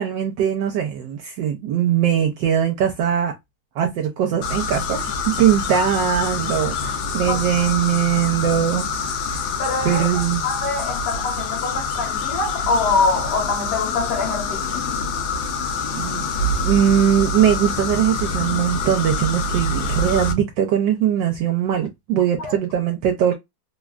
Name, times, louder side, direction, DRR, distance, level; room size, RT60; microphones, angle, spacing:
voice 1, 0.0-3.3 3.8-5.0 5.3-8.9 9.8-10.4 15.9-23.3, right 9 dB, 80° right, 1.2 m, -21 dB
sound 1, 4.4-20.3, left 3 dB, 80° left, 1.3 m, -26 dB
voice 2, 7.2-7.7 9.6-14.8 22.4-22.5, left 3 dB, 60° left, 1.7 m, -24 dB
3.4 x 2.2 x 2.3 m
omnidirectional pair, 2.0 m